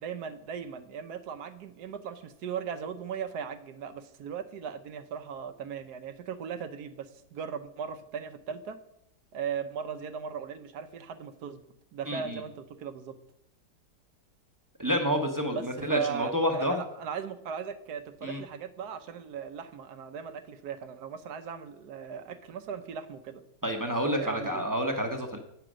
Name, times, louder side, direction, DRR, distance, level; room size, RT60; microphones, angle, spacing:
voice 1, 0.0-8.8 9.3-11.6 11.9-13.2 15.5-23.4 24.1-24.6, right 7 dB, 70° right, 10 dB, 1.2 m, -38 dB
voice 2, 12.1-12.4 14.8-16.8 18.2-18.4 23.6-25.4, equal, 15° right, 3 dB, 0.7 m, -29 dB
8.9 x 5.8 x 6.2 m, 0.76 s
omnidirectional pair, 1.9 m